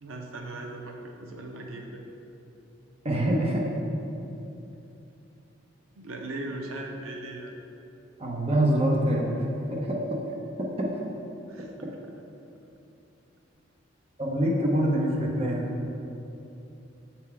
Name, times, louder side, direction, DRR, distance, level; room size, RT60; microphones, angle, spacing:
voice 1, 0.0-2.0 6.0-7.5 11.5-11.7, right 2 dB, 90° right, 2 dB, 0.6 m, -38 dB
voice 2, 3.0-3.6 8.2-9.3 9.7-10.0 14.2-15.7, right 1 dB, 30° right, -2 dB, 0.7 m, -25 dB
6.8 x 4.3 x 3.8 m, 2.8 s
head